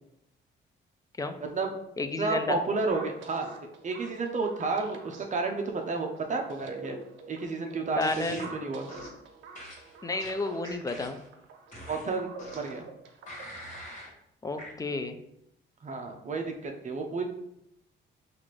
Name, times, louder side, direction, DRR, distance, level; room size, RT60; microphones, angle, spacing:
voice 1, 1.4-1.7 2.2-3.5 3.8-7.0 7.3-8.9 11.9-12.3 12.5-12.9 15.8-17.2, right 3 dB, 40° right, 3 dB, 0.6 m, -31 dB
voice 2, 2.0-2.6 8.0-8.5 10.0-11.2 14.4-15.2, left 3 dB, 20° left, 8 dB, 0.4 m, -31 dB
sound 1, 2.9-13.9, right 4 dB, 75° right, 0.7 m, -47 dB
sound 2, 8.0-8.5 8.9-9.2 9.5-11.3 11.7-12.8 13.3-14.1 14.6-14.7, left 1 dB, 35° left, 1.4 m, -45 dB
5.6 x 2.5 x 3.2 m, 0.80 s
cardioid pair, 90°, 20 cm